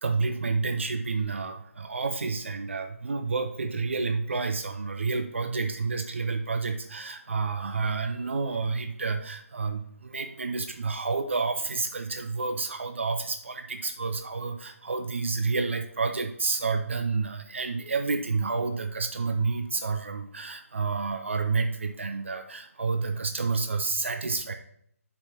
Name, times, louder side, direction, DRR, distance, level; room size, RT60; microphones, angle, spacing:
voice 1, 0.0-24.5, right 4 dB, 50° right, 6 dB, 0.7 m, -29 dB
9.7 x 6.9 x 2.9 m, 0.67 s
figure-of-eight pair, 150°, 8 cm